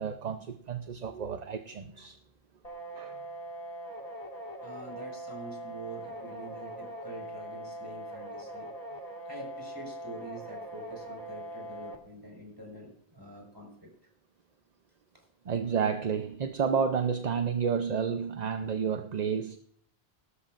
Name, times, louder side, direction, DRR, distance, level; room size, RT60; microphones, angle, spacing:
voice 1, 0.0-2.2 2.9-3.2 15.5-19.6, right 6 dB, 45° right, 0.7 m, -30 dB
sound 1, 2.6-12.0, right 1 dB, 35° left, 2.0 m, -42 dB
voice 2, 4.6-8.7 9.3-13.9, right 1 dB, 20° right, 4.9 m, -45 dB
18.5 x 13.0 x 2.5 m
omnidirectional pair, 1.1 m